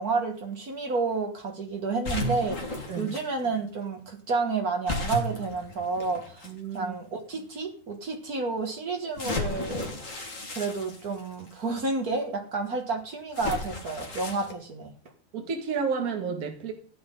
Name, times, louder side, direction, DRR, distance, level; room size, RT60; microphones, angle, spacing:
voice 1, 0.0-14.9, right 3 dB, 85° right, 0.8 m, -30 dB
sound 1, 2.0-3.2 4.9-6.5 7.3-7.4 9.2-11.5 13.3-14.5, left 2 dB, 80° left, 0.7 m, -34 dB
voice 2, 6.4-6.9 15.3-16.7, right 5 dB, 35° right, 1.5 m, -31 dB
16.0 x 9.8 x 3.9 m
omnidirectional pair, 4.7 m